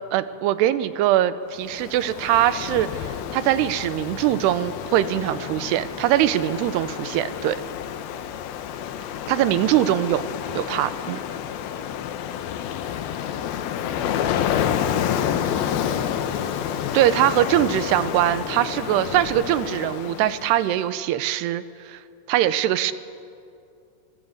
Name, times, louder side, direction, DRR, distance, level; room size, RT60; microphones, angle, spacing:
voice 1, 0.1-7.6 9.3-10.3 10.6-11.2 16.9-22.0 22.3-22.9, right 13 dB, 85° right, 14 dB, 2.9 m, -22 dB
Ocean, 1.6-20.7, left 9 dB, 75° left, 2.7 m, -29 dB
voice 2, 13.9-14.5 14.8-16.6, left 4 dB, 50° left, 4 dB, 0.9 m, -39 dB
25.5 x 20.0 x 7.9 m, 2.5 s
omnidirectional pair, 4.7 m